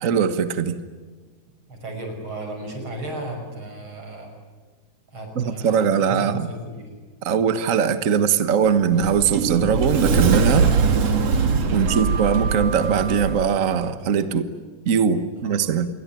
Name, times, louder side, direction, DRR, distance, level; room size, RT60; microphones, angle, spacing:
voice 1, 0.0-0.8 5.3-6.5 7.2-10.7 11.7-14.5 14.8-15.9, right 7 dB, 85° right, 11 dB, 0.7 m, -21 dB
voice 2, 1.7-4.3 5.1-6.9 11.7-12.1 15.4-15.6, right 1 dB, 40° right, 4 dB, 6.5 m, -35 dB
Sliding door, 8.6-13.4, right 5 dB, 55° right, 3.0 m, -21 dB
28.0 x 21.5 x 9.1 m, 1.4 s
omnidirectional pair, 3.5 m